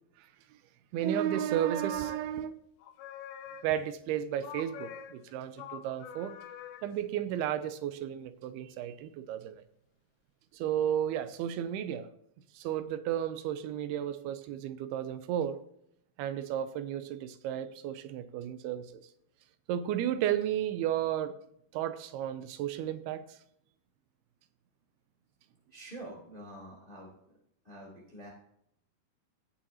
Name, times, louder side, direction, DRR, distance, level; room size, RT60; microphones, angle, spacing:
voice 1, 0.9-2.5 3.6-6.4 6.8-9.6 10.5-12.1 12.6-15.6 16.2-18.9 19.7-21.4 21.7-23.2, right 10 dB, 80° right, 2.4 m, -33 dB
sound 1, 1.3-2.5 2.8-4.0 4.4-7.0, left 9 dB, 80° left, 2.5 m, -46 dB
voice 2, 25.7-27.4 27.6-28.3, right 1 dB, 15° left, 2.5 m, -47 dB
17.0 x 7.4 x 2.8 m
omnidirectional pair, 4.9 m